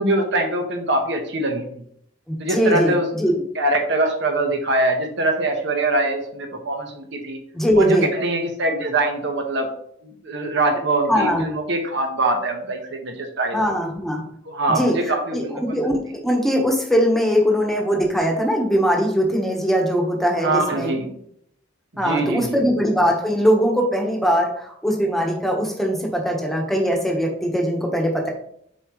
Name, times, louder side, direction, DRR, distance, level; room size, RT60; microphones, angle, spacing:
voice 1, 0.0-1.7 2.4-3.1 3.5-7.4 7.7-9.7 10.0-13.7 14.5-15.6 20.4-21.2 22.0-22.7, right 2 dB, 65° right, 4 dB, 1.3 m, -23 dB
voice 2, 2.3-3.3 7.5-8.1 11.1-11.4 13.5-14.2 14.7-20.9 22.0-28.3, equal, ahead, 0 dB, 1.2 m, -21 dB
7.4 x 4.7 x 3.2 m, 0.68 s
head